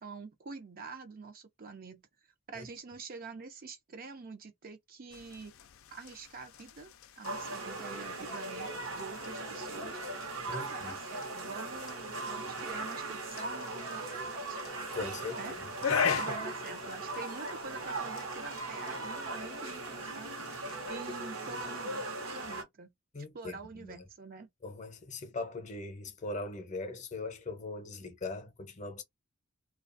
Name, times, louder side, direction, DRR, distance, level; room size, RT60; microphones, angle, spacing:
voice 1, 0.0-2.0 2.5-5.5 5.9-6.9 7.2-10.0 10.5-14.6 15.3-15.5 16.2-20.3 20.9-24.5, right 4 dB, 45° right, 0.5 m, -46 dB
sound 1, 5.1-20.9, left 7 dB, 70° left, 0.4 m, -42 dB
sound 2, 7.2-22.6, right 2 dB, 65° right, 0.9 m, -39 dB
voice 2, 10.5-10.9 14.9-15.4 15.9-16.2 23.1-24.0 24.6-29.0, left 3 dB, 35° left, 0.7 m, -40 dB
2.4 x 2.3 x 2.5 m
head